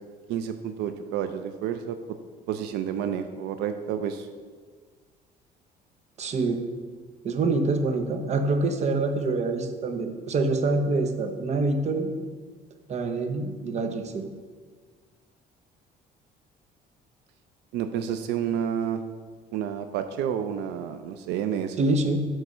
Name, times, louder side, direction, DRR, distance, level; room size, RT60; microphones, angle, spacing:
voice 1, 0.3-2.0 2.5-4.3 17.7-19.0 19.5-21.8, right 9 dB, 85° right, 9 dB, 0.4 m, -30 dB
voice 2, 6.2-6.6 7.2-12.1 12.9-14.3 21.8-22.2, right 3 dB, 40° right, 7 dB, 0.8 m, -26 dB
7.9 x 3.3 x 6.2 m, 1.5 s
cardioid pair, 110°, 17 cm